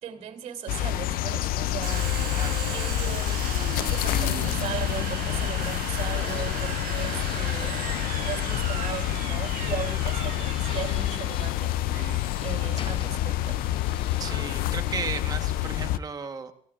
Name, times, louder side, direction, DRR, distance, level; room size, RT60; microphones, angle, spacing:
voice 1, 0.0-2.1 2.7-3.4 3.8-7.8 8.2-11.8 12.4-13.7, right 7 dB, 50° right, 7 dB, 2.7 m, -37 dB
sound 1, 0.7-16.0, left 14 dB, 85° left, 0.5 m, -28 dB
Domestic sounds home sounds, 1.8-13.2, right 12 dB, 85° right, 1.2 m, -37 dB
sound 2, 2.4-15.7, left 6 dB, 35° left, 1.0 m, -46 dB
voice 2, 2.4-2.8 14.2-16.5, right 5 dB, 25° right, 7 dB, 1.2 m, -35 dB
27.0 x 15.5 x 2.4 m, 0.63 s
cardioid pair, 180°, 15 cm